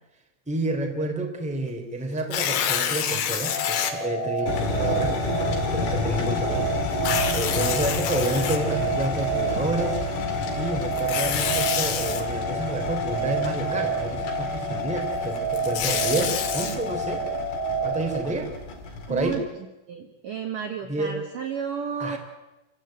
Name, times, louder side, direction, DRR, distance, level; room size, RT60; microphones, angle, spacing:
voice 1, 0.5-5.2 5.7-6.7 7.3-10.0 10.6-17.3 17.8-18.5 19.1-19.4 20.9-21.2 22.0-22.2, right 2 dB, ahead, 3 dB, 2.3 m, -29 dB
Tearing, 2.2-3.9 4.6-4.7 6.9-9.0 10.9-12.2 15.4-16.8, left 9 dB, 80° left, 4.5 m, -27 dB
sound 1, 3.4-18.2, right 2 dB, 45° left, 4.8 m, -29 dB
sound 2, 4.5-19.4, left 3 dB, 65° left, 6.4 m, -31 dB
voice 2, 19.1-19.4 19.9-22.2, right 7 dB, 65° right, 5 dB, 2.3 m, -32 dB
28.0 x 15.5 x 9.0 m, 1.0 s
omnidirectional pair, 5.5 m